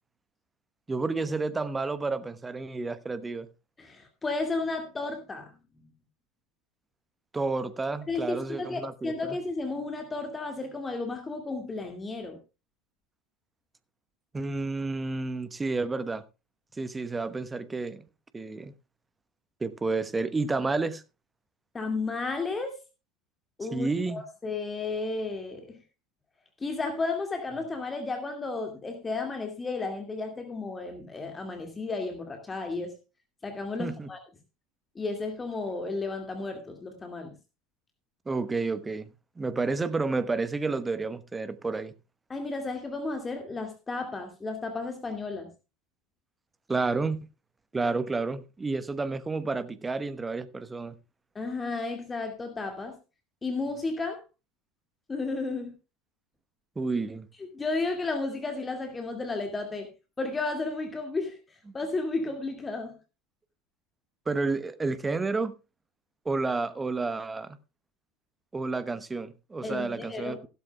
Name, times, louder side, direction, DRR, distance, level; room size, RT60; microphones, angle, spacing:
voice 1, 0.9-3.5 7.3-9.4 14.3-16.2 16.8-18.0 18.3-18.7 19.6-21.0 23.7-24.2 33.8-34.1 38.3-39.1 39.4-41.9 46.7-47.2 47.7-50.9 56.8-57.3 64.3-65.5 66.2-67.6 68.5-70.5, right 3 dB, 15° right, 1.0 m, -30 dB
voice 2, 3.8-5.5 8.1-12.4 21.7-22.8 23.6-25.8 26.6-32.9 33.4-34.2 35.0-37.4 42.3-45.5 51.4-52.9 53.4-54.2 55.1-55.7 57.5-59.9 60.2-61.4 61.7-63.0 69.6-70.4, left 3 dB, 20° left, 2.1 m, -33 dB
16.0 x 12.5 x 2.3 m
figure-of-eight pair, 75°, 0 cm